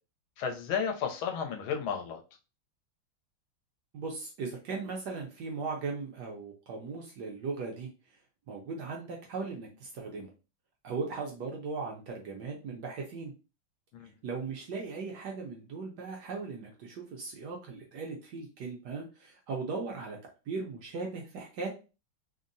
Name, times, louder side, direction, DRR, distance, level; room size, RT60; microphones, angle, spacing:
voice 1, 0.4-2.2 13.9-14.1, left 7 dB, 85° left, 4 dB, 1.4 m, -33 dB
voice 2, 3.9-7.9 8.5-10.3 10.8-13.3 14.2-20.2 20.5-21.7, right 4 dB, 70° right, 0 dB, 1.1 m, -38 dB
3.6 x 2.0 x 2.5 m, 0.31 s
omnidirectional pair, 2.2 m